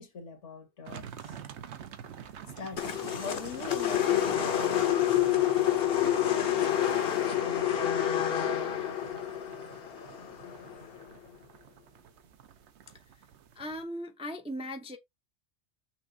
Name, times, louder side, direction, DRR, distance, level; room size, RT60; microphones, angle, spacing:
voice 1, 0.0-1.4 2.4-8.2 8.6-8.8 9.0-9.1, left 4 dB, 75° left, 1.6 m, -45 dB
sound 1, 0.9-13.8, right 9 dB, 70° right, 1.0 m, -48 dB
sound 2, 2.8-11.0, left 11 dB, 60° left, 0.9 m, -28 dB
voice 2, 13.6-15.0, equal, 10° right, 0.4 m, -38 dB
5.9 x 2.4 x 3.7 m
omnidirectional pair, 1.2 m